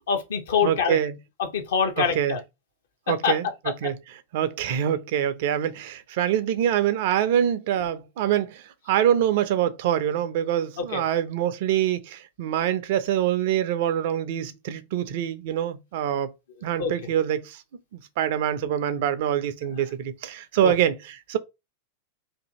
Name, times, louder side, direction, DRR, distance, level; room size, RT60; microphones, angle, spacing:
voice 1, 0.1-1.0 1.4-2.4 3.2-3.3 10.8-11.0 16.8-16.9 20.6-20.7, left 6 dB, 60° left, 0.8 m, -24 dB
voice 2, 0.6-1.2 2.0-2.4 3.1-4.0 4.3-16.3 16.6-17.6 17.9-21.4, right 10 dB, 50° right, 0.4 m, -25 dB
2.7 x 2.6 x 3.8 m
figure-of-eight pair, 90°, 0 cm